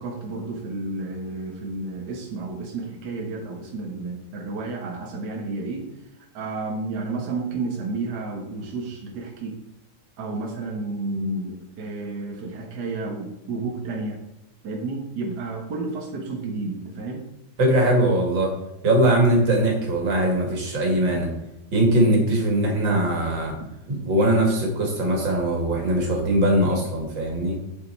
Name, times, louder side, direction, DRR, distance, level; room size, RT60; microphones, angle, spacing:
voice 1, 0.0-5.9 6.2-9.6 10.2-14.2 14.6-17.3 23.5-23.7, right 3 dB, 65° right, 1 dB, 1.9 m, -31 dB
voice 2, 17.6-18.5 18.8-21.3 21.7-23.5 23.9-27.6, right 1 dB, 90° right, 1 dB, 3.0 m, -21 dB
8.4 x 7.5 x 4.5 m, 0.90 s
omnidirectional pair, 2.0 m